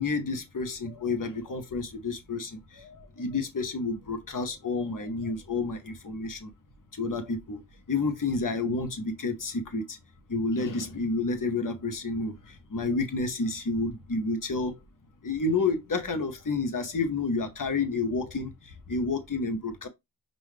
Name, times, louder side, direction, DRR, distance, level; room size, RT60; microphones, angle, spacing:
voice 1, 0.0-2.9 3.2-6.5 7.0-7.6 7.9-10.0 10.3-12.3 12.7-14.8 15.2-18.5 18.9-19.9, left 3 dB, 45° left, 1.0 m, -30 dB
5.4 x 2.6 x 3.2 m
wide cardioid pair, 100°, 46 cm